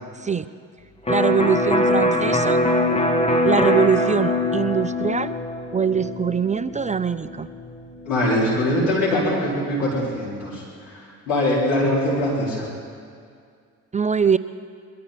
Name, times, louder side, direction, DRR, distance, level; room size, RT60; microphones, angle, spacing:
Electric guitar, 1.1-8.7, left 1 dB, 15° left, 2.1 m, -23 dB
voice 1, 1.1-2.6 3.4-5.3 5.7-7.5 13.9-14.4, right 6 dB, 20° right, 14 dB, 0.5 m, -22 dB
voice 2, 8.0-12.7, left 1 dB, 85° left, -6 dB, 4.7 m, -22 dB
23.0 x 13.5 x 4.4 m, 2.2 s
hypercardioid pair, 50°, 37 cm